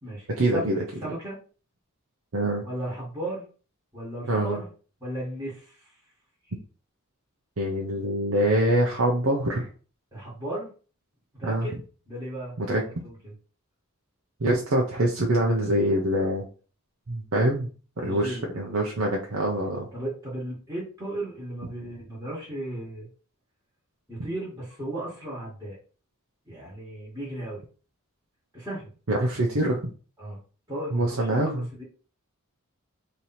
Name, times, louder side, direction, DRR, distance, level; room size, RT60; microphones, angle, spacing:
voice 1, 0.4-0.8 2.3-2.6 4.3-4.6 7.6-9.7 11.4-11.7 12.6-12.8 14.4-16.5 17.1-17.7 18.0-19.9 29.1-29.8 30.9-31.7, right 1 dB, 70° right, -1 dB, 0.7 m, -24 dB
voice 2, 1.0-1.3 2.6-3.4 3.9-4.7 5.0-5.8 10.1-10.7 11.3-11.7 12.1-13.3 18.0-18.7 19.9-23.1 24.1-25.8 26.5-27.6 28.5-28.9 30.2-30.4 30.7-31.8, right 1 dB, 10° right, -6 dB, 1.6 m, -35 dB
3.3 x 2.9 x 4.1 m, 0.37 s
head